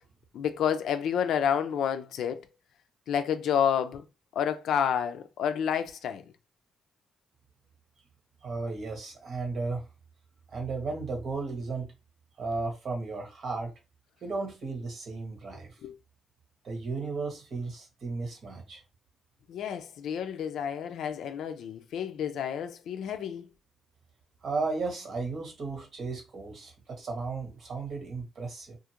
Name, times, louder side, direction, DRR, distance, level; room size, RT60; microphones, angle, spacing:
voice 1, 0.3-2.4 3.1-4.1 4.3-6.2 15.8-15.9 19.5-23.4, left 8 dB, 80° left, 0.4 m, -29 dB
voice 2, 8.4-9.8 10.5-11.9 12.4-13.7 14.2-15.7 16.6-18.8 24.4-28.8, right 3 dB, 65° right, 1.1 m, -34 dB
2.5 x 2.4 x 2.8 m
cardioid pair, 85°, 0 cm